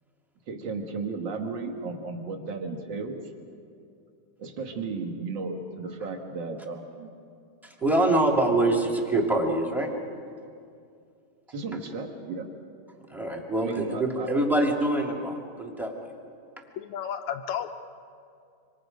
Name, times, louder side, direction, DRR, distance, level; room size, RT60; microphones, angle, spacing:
voice 1, 0.5-3.2 4.4-7.1 11.5-12.5 13.6-14.3, right 4 dB, 40° right, 3 dB, 2.0 m, -34 dB
voice 2, 7.6-9.9 13.1-16.1, right 2 dB, ahead, 0 dB, 1.3 m, -25 dB
voice 3, 16.8-17.7, left 9 dB, 80° left, 6 dB, 1.7 m, -32 dB
26.0 x 26.0 x 5.2 m, 2.4 s
omnidirectional pair, 4.0 m